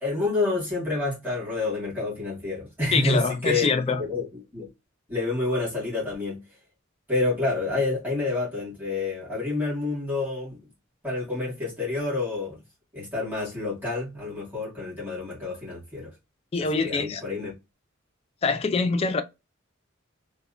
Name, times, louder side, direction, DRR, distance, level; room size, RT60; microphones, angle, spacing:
voice 1, 0.0-3.7 4.0-4.2 4.5-4.7 5.1-6.4 7.1-10.6 11.0-12.6 12.9-16.1 16.6-17.5, left 3 dB, 10° right, 1.6 m, -28 dB
voice 2, 2.9-4.0 16.5-17.2 18.4-19.2, left 4 dB, 30° left, 0.3 m, -24 dB
3.2 x 2.1 x 2.4 m
head